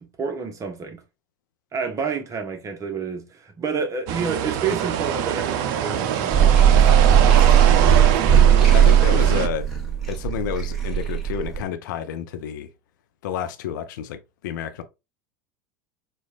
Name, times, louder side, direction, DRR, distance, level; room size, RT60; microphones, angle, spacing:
voice 1, 0.0-1.0 1.7-7.4, right 5 dB, 30° right, 0.9 m, -29 dB
sound 1, 4.1-9.5, right 9 dB, 55° right, 0.4 m, -24 dB
sound 2, 6.3-11.6, right 9 dB, ahead, 1.3 m, -17 dB
voice 2, 8.7-9.7 10.1-12.7 13.2-14.8, left 9 dB, 65° left, 0.6 m, -30 dB
4.4 x 2.3 x 2.5 m
figure-of-eight pair, 80°, 11 cm